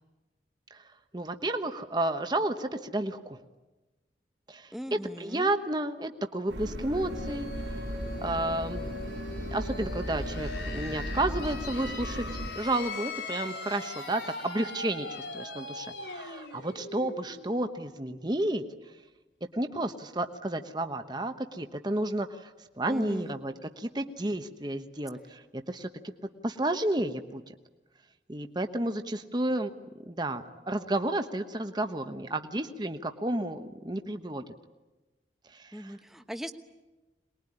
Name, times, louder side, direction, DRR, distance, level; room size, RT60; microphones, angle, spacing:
voice 1, 1.1-3.4 4.5-7.8 8.2-8.8 9.5-12.2 12.5-15.1 15.3-18.6 19.5-22.5 22.8-25.4 25.7-25.9 26.4-27.5 28.3-29.7 30.1-34.4 35.5-36.0, right 1 dB, 25° right, 7 dB, 1.1 m, -31 dB
voice 2, 4.7-5.5 22.9-23.4 35.7-36.5, equal, ahead, 7 dB, 1.1 m, -39 dB
sound 1, 6.5-12.5, equal, 90° right, 3.3 m, -36 dB
sound 2, 6.8-18.3, left 3 dB, 75° left, 4.6 m, -41 dB
23.0 x 21.0 x 9.9 m, 1.1 s
head